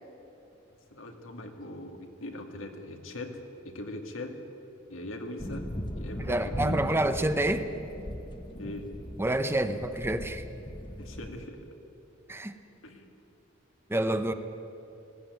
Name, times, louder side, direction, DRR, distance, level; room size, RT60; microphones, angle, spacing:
voice 1, 0.9-3.4 3.6-4.4 4.9-5.7 6.0-6.9 8.6-8.9 11.0-11.7 12.8-13.0, left 1 dB, 85° left, 3 dB, 2.3 m, -40 dB
sound 1, 5.4-11.5, left 1 dB, 25° left, 1.0 m, -38 dB
voice 2, 6.2-7.7 9.2-10.4 12.3-12.5 13.9-14.3, right 1 dB, 10° right, 9 dB, 0.8 m, -28 dB
19.0 x 16.0 x 9.3 m, 3.0 s
head